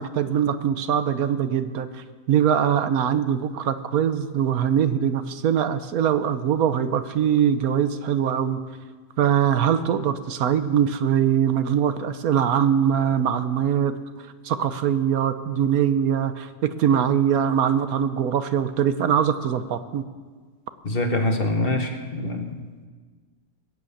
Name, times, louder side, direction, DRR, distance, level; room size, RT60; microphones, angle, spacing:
voice 1, 0.0-8.6 9.2-13.9 14.4-20.0, right 9 dB, 75° right, 11 dB, 1.2 m, -22 dB
voice 2, 20.8-22.5, left 2 dB, 40° left, 5 dB, 1.4 m, -24 dB
20.5 x 7.8 x 8.4 m, 1.5 s
omnidirectional pair, 1.6 m